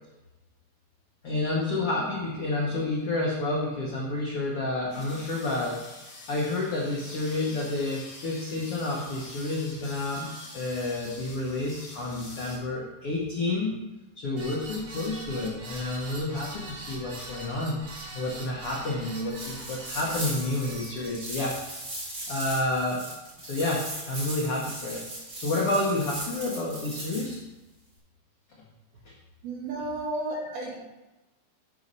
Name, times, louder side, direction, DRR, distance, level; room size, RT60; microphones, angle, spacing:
voice 1, 1.2-5.9 6.3-13.8 14.1-21.6 22.3-23.0 23.4-25.0 25.4-27.4 29.0-29.1, left 2 dB, 85° left, -3 dB, 1.2 m, -30 dB
sound 1, 4.9-12.6, left 2 dB, 50° left, 3.3 m, -46 dB
sound 2, 14.4-21.1, right 2 dB, 50° right, 1.8 m, -42 dB
sound 3, 19.3-27.4, right 1 dB, 25° right, 2.3 m, -38 dB
voice 2, 29.4-30.8, right 2 dB, 75° right, -4 dB, 4.0 m, -32 dB
11.5 x 4.1 x 5.4 m, 1.1 s
omnidirectional pair, 4.4 m